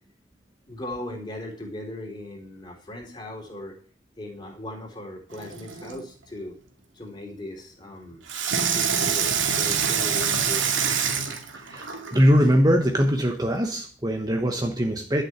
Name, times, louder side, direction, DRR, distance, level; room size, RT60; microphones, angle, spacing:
voice 1, 0.7-3.7 4.2-6.6 6.9-8.2 8.7-10.7 11.2-11.3, left 1 dB, 25° left, 0 dB, 3.8 m, -38 dB
Water tap faucet / Sink (filling or washing), 5.3-6.0 8.3-12.2 12.9-13.0, right 7 dB, 90° right, 2.3 m, -25 dB
voice 2, 11.6-15.2, equal, 20° right, 3 dB, 1.1 m, -22 dB
12.0 x 6.7 x 8.0 m, 0.43 s
head